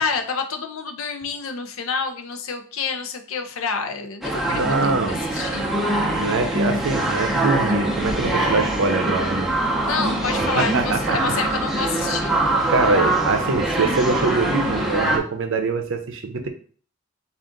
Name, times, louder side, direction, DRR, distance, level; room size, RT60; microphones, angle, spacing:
voice 1, 0.0-5.8 9.8-12.4, left 5 dB, 65° left, 6 dB, 0.6 m, -28 dB
sound 1, 4.2-15.2, right 2 dB, ahead, 0.6 m, -23 dB
voice 2, 4.5-5.2 6.1-9.5 10.5-11.2 12.7-16.5, right 3 dB, 60° right, 6 dB, 0.6 m, -23 dB
3.8 x 2.5 x 3.6 m, 0.43 s
head